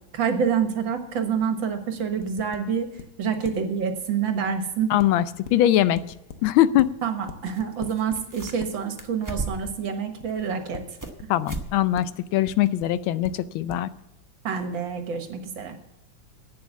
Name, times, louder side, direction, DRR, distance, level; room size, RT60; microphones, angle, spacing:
voice 1, 0.1-2.9 3.2-4.9 7.0-10.8 11.2-11.3 14.4-15.8, right 7 dB, 75° right, 6 dB, 2.1 m, -27 dB
sound 1, 2.2-2.6 3.0-3.1 3.4-3.5 5.0-5.5 6.0-6.5 6.8-6.9 7.3-8.2 8.6-8.7 10.2-10.3 10.7-10.8 11.2-11.6 11.9-12.1 12.4-13.3 13.7-13.8, left 7 dB, 60° left, 1.4 m, -39 dB
voice 2, 4.9-6.0 6.4-6.9 11.3-13.9, left 12 dB, 85° left, 15 dB, 1.4 m, -21 dB
sound 2, 7.5-7.6 7.9-8.7 9.0-9.8 10.3-11.2 11.5-11.7 12.0-12.1 12.7-12.8, right 2 dB, 15° right, 0.7 m, -35 dB
11.0 x 8.7 x 7.0 m, 0.86 s
omnidirectional pair, 2.2 m